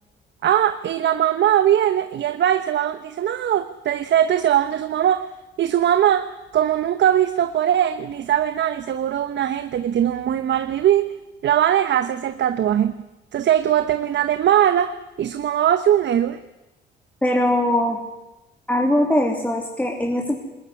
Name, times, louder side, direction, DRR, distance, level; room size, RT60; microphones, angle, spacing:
voice 1, 0.4-5.3 5.6-11.1 11.4-12.9 13.3-16.4, right 10 dB, 65° right, 10 dB, 1.1 m, -20 dB
voice 2, 17.2-18.0 18.7-20.3, left 1 dB, 5° left, 0 dB, 3.3 m, -21 dB
20.5 x 20.0 x 9.8 m, 1.0 s
cardioid pair, 90°, 20 cm